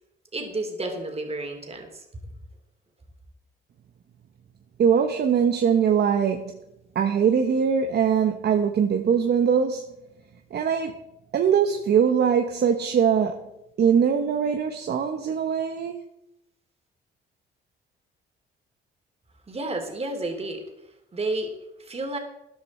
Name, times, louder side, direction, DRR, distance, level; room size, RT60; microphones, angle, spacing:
voice 1, 0.3-2.2 19.5-20.6 21.1-21.5 21.8-22.2, right 2 dB, 30° right, 3 dB, 3.0 m, -31 dB
voice 2, 4.8-6.5 6.9-9.8 10.5-10.9 11.3-13.4 13.8-16.0, right 7 dB, 55° right, 5 dB, 1.0 m, -22 dB
13.5 x 10.5 x 4.3 m, 0.87 s
cardioid pair, 90°, 20 cm